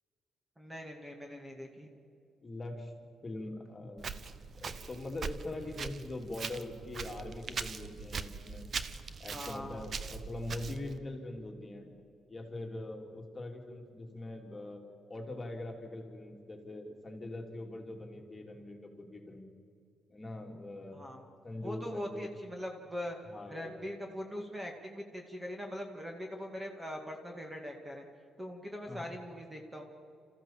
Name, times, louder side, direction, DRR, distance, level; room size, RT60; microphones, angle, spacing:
voice 1, 0.6-1.9 9.3-9.9 20.9-21.3 21.6-23.2 23.5-28.0 28.4-29.8, equal, 15° right, 2 dB, 2.2 m, -41 dB
voice 2, 2.4-2.9 3.2-4.0 4.6-8.7 9.2-11.9 12.3-19.5 20.1-21.1 21.4-22.3 23.3-23.8 28.9-29.1, left 2 dB, 25° left, 2 dB, 2.9 m, -42 dB
Walk footsteps, 4.0-11.0, right 5 dB, 45° right, 0.9 m, -41 dB
27.0 x 14.5 x 7.4 m, 2.4 s
cardioid pair, 90°, 0 cm